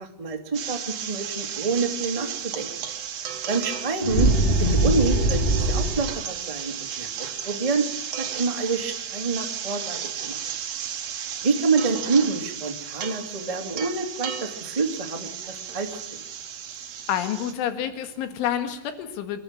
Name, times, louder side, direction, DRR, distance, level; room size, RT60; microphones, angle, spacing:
voice 1, 0.0-2.7 3.5-4.3 4.6-7.9 8.1-10.4 11.4-16.0, right 4 dB, 25° right, 2 dB, 0.7 m, -27 dB
sound 1, 0.5-17.5, right 8 dB, 85° right, 1.4 m, -34 dB
sound 2, 4.0-6.2, right 1 dB, 15° left, 2.3 m, -22 dB
voice 2, 17.1-19.4, left 10 dB, 85° left, 9 dB, 4.2 m, -28 dB
27.0 x 11.5 x 8.9 m, 0.90 s
omnidirectional pair, 5.5 m